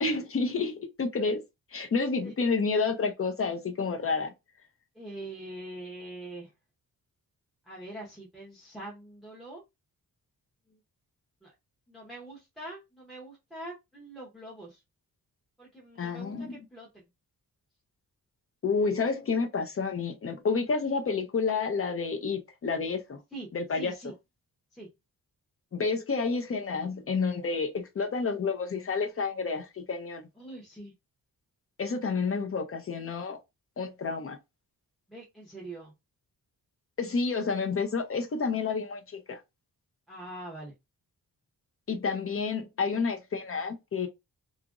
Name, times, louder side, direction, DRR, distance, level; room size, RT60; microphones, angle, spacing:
voice 1, 0.0-1.4 1.7-4.3 16.0-16.6 18.6-23.2 23.5-23.9 25.7-30.2 31.8-33.4 33.8-34.4 37.0-39.4 41.9-44.1, left 4 dB, 40° left, 0.6 m, -29 dB
voice 2, 4.9-6.5 7.7-9.6 11.4-11.5 11.9-14.8 15.6-17.0 23.3-23.5 23.8-24.1 24.7-24.9 30.4-30.9 35.1-35.9 40.1-40.7, right 1 dB, ahead, 0.7 m, -43 dB
2.9 x 2.4 x 2.4 m
wide cardioid pair, 150°, 36 cm